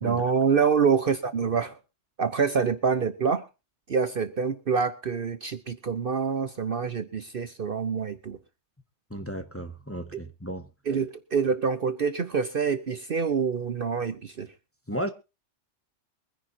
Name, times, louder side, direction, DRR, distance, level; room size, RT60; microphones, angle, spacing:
voice 1, 0.0-1.8 2.2-3.4 3.9-8.4 10.9-14.5, right 6 dB, 50° right, 1.0 m, -26 dB
voice 2, 9.1-10.7 14.9-15.1, right 1 dB, 10° left, 1.3 m, -34 dB
23.0 x 10.5 x 2.8 m
omnidirectional pair, 1.3 m